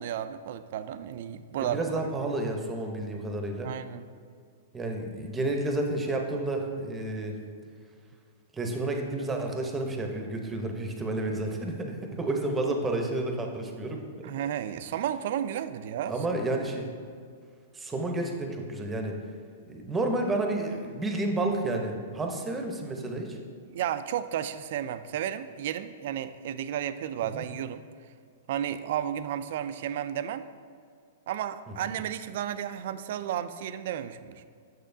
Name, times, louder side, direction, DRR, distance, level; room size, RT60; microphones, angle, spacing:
voice 1, 0.0-1.8 3.6-4.1 14.2-16.1 23.7-27.8 28.5-30.5 31.3-34.4, right 10 dB, 65° right, 12 dB, 0.3 m, -33 dB
voice 2, 1.6-3.7 4.7-7.3 8.5-14.0 16.1-16.9 17.7-19.1 19.7-23.4 27.3-27.4 31.7-31.9, right 2 dB, 15° right, 3 dB, 0.7 m, -30 dB
6.5 x 6.3 x 2.6 m, 2.1 s
hypercardioid pair, 130°, 0 cm